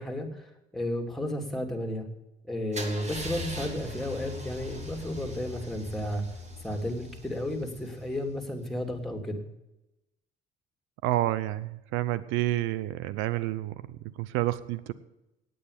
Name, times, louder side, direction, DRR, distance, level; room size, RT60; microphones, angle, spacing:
voice 1, 0.0-2.1 2.5-6.2 6.6-9.4, left 1 dB, ahead, 3 dB, 2.7 m, -33 dB
Car / Engine starting / Idling, 2.7-8.6, left 1 dB, 35° right, 2.8 m, -40 dB
voice 2, 11.0-14.9, right 15 dB, 90° right, 16 dB, 0.6 m, -29 dB
9.4 x 8.7 x 8.3 m, 0.94 s
cardioid pair, 90°, 20 cm